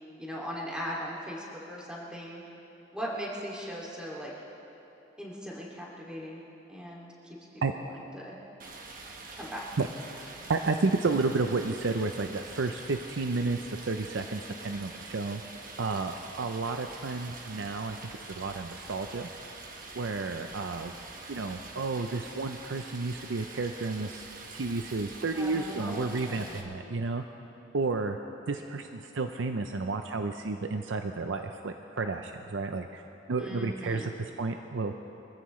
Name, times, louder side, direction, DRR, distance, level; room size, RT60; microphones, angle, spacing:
voice 1, 0.2-2.4 2.9-4.3 5.2-6.4 6.7-7.1 7.8-8.3 9.3-9.6 25.3-26.8 33.4-34.1, equal, 5° right, -5 dB, 2.5 m, -39 dB
Stream, 8.6-26.6, right 3 dB, 50° right, 1.4 m, -45 dB
voice 2, 10.5-15.4 15.8-19.3 20.0-20.9 21.3-24.2 24.5-27.2 27.7-28.2 28.5-33.0 33.3-35.0, right 3 dB, 85° right, 6 dB, 0.6 m, -31 dB
24.0 x 15.0 x 3.2 m, 3.0 s
head